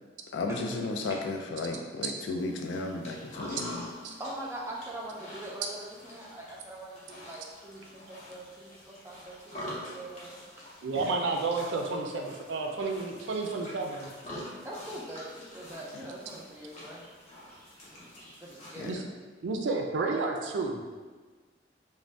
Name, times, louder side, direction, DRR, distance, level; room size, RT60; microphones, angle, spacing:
voice 1, 0.3-3.7 10.9-11.2 15.9-16.1 18.8-18.9, left 3 dB, 85° left, 3 dB, 0.3 m, -34 dB
sound 1, 2.4-18.9, left 1 dB, 35° left, 0.6 m, -46 dB
voice 2, 4.2-10.4 14.6-17.0 17.9-19.0, right 1 dB, 15° right, -3 dB, 0.4 m, -43 dB
voice 3, 10.8-14.1 18.8-19.0 19.4-20.8, right 3 dB, 85° right, 2 dB, 0.4 m, -31 dB
2.6 x 2.1 x 3.2 m, 1.4 s
head